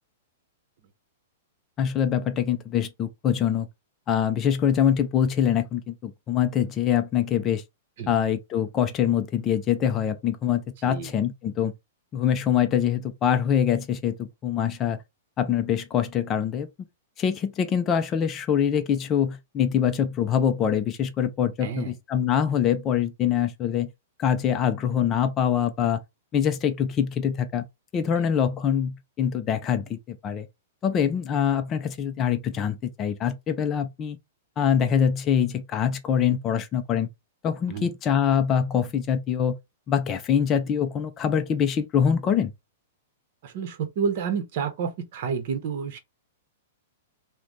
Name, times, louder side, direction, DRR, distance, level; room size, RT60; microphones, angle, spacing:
voice 1, 1.8-3.7 4.1-7.6 8.1-11.7 12.1-15.0 15.4-16.7 17.2-23.9 24.2-26.0 26.3-27.7 27.9-30.5 30.8-34.2 34.6-37.1 37.4-39.6 39.9-42.5, left 8 dB, 20° left, 0.5 m, -24 dB
voice 2, 10.8-11.1 21.6-22.0 28.1-28.3 37.7-37.9 43.4-46.0, right 6 dB, 45° right, 0.9 m, -30 dB
3.1 x 2.2 x 3.9 m
supercardioid pair, 170°, 0 cm